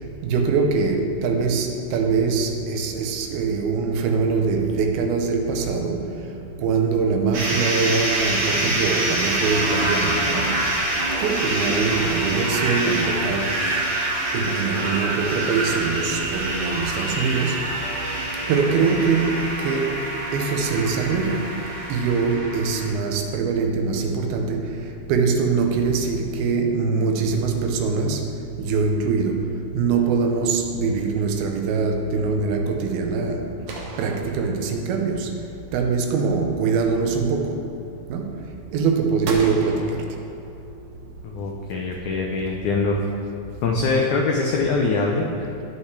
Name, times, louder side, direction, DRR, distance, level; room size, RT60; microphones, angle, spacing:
voice 1, 0.2-6.1 6.6-10.6 11.2-13.6 14.3-17.7 18.5-20.0 20.3-21.6 21.9-24.7 25.1-28.3 28.6-33.5 34.0-35.3 35.7-37.7 38.1-38.4 38.7-40.0, right 4 dB, 90° right, 2.7 m, -23 dB
sound 1, 7.3-22.9, right 1 dB, 45° right, 2.4 m, -26 dB
Wind instrument woodwind instrument, 17.8-22.8, right 2 dB, 60° left, 3.9 m, -43 dB
sound 2, 33.7-35.1 39.2-40.8, right 3 dB, 70° right, 1.8 m, -36 dB
voice 2, 41.2-43.0 43.6-45.6, left 3 dB, 85° left, 1.7 m, -23 dB
17.0 x 5.8 x 3.3 m
omnidirectional pair, 4.3 m